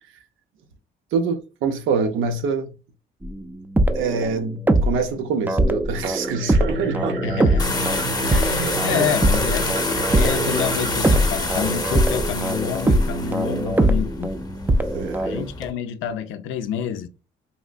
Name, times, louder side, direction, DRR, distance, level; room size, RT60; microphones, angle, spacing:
voice 1, 1.1-2.7 3.9-7.2 8.2-9.0 9.5-9.6 14.9-15.4, right 5 dB, 85° right, 0.6 m, -26 dB
sound 1, 3.2-5.1 5.5-15.5, right 1 dB, 10° right, 0.3 m, -22 dB
sound 2, 6.2-12.4, right 3 dB, 60° right, 1.0 m, -31 dB
voice 2, 7.2-7.9 8.2-14.3 15.2-17.1, left 8 dB, 90° left, 0.4 m, -28 dB
sound 3, 7.6-15.7, left 3 dB, 20° left, 0.7 m, -28 dB
3.5 x 2.4 x 2.3 m
cardioid pair, 90°, 20 cm